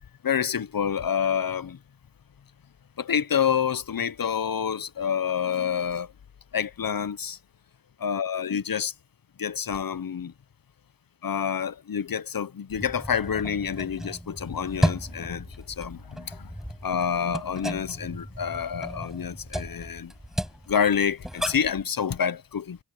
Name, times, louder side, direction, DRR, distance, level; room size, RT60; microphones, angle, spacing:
voice 1, 0.2-1.8 3.0-6.1 6.5-7.4 8.0-8.9 9.4-10.3 11.2-16.5 16.8-20.1 20.7-22.8, left 7 dB, 60° left, 0.8 m, -28 dB
sound 1, 12.7-21.8, equal, ahead, 4.8 m, -34 dB
cardioid pair, 50°, 38 cm